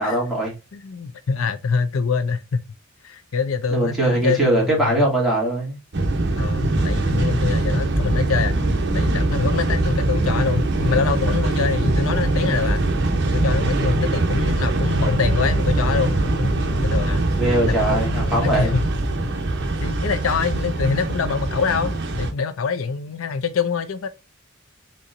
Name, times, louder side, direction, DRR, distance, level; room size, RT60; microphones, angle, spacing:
voice 1, 0.0-0.5 3.7-5.8 17.3-18.7, right 1 dB, ahead, 2.5 m, -21 dB
voice 2, 0.7-2.6 3.0-5.0 6.4-8.6 8.9-12.9 13.3-17.2 17.6-18.9 19.8-24.1, left 5 dB, 80° left, 0.5 m, -25 dB
sound 1, 5.9-22.3, right 2 dB, 60° right, 0.9 m, -22 dB
4.4 x 3.8 x 2.6 m
head